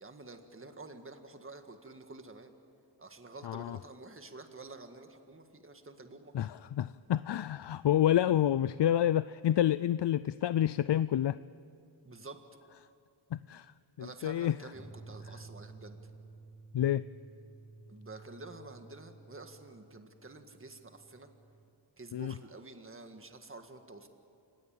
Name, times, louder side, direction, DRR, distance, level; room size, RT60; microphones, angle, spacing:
voice 1, 0.0-2.5 3.0-6.3 12.0-12.4 14.0-16.0 17.9-21.3 22.0-24.1, right 3 dB, 25° right, 1.8 m, -49 dB
voice 2, 3.4-3.8 6.3-11.4 13.3-13.7 14.0-14.5 16.7-17.0 22.1-22.3, left 11 dB, 60° left, 0.5 m, -28 dB
sound 1, 14.7-21.6, right 3 dB, ahead, 1.7 m, -53 dB
30.0 x 18.0 x 8.9 m
wide cardioid pair, 85°, 48 cm